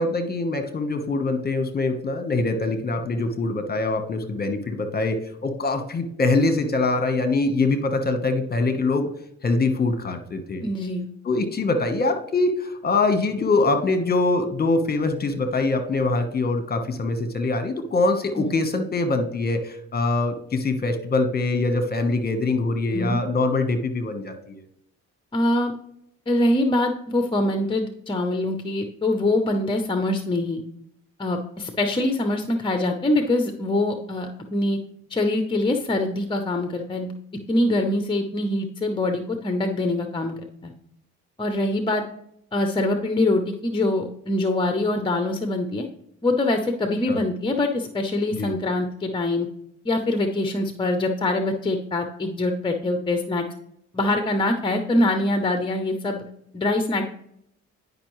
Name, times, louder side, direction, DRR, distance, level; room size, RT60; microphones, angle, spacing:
voice 1, 0.0-9.1 9.4-10.6 11.2-24.6 47.1-47.2 48.3-48.5, left 3 dB, 30° left, 8 dB, 1.2 m, -23 dB
voice 2, 10.6-11.1 18.3-18.5 22.9-23.2 25.3-25.7 26.3-30.6 31.2-34.8 35.1-37.1 37.5-40.7 41.4-42.0 42.5-45.9 46.2-49.5 49.8-53.4 53.9-56.2 56.5-57.0, left 2 dB, 15° left, 5 dB, 0.8 m, -24 dB
9.9 x 5.3 x 3.1 m, 0.74 s
cardioid pair, 90°, 30 cm